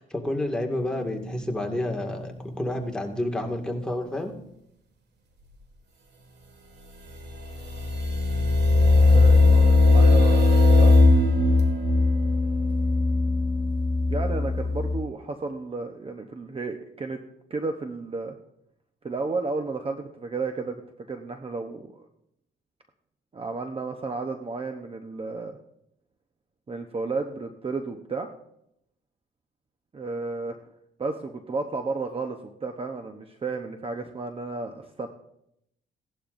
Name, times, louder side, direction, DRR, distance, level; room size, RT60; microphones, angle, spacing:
voice 1, 0.2-4.3, left 1 dB, 5° left, 1 dB, 2.0 m, -29 dB
sound 1, 0.7-1.1 1.3-1.7 2.0-2.3 2.6-2.9 3.2-3.5 3.9-4.1 7.3-15.0, left 3 dB, 55° right, 1.9 m, -20 dB
voice 2, 9.1-10.9 14.1-17.2 17.5-18.3 19.0-20.8 21.1-22.0 23.3-25.5 26.7-28.3 29.9-30.6 31.0-35.1, right 3 dB, 30° right, 5 dB, 0.9 m, -32 dB
17.0 x 11.5 x 2.6 m, 0.79 s
cardioid pair, 90°, 20 cm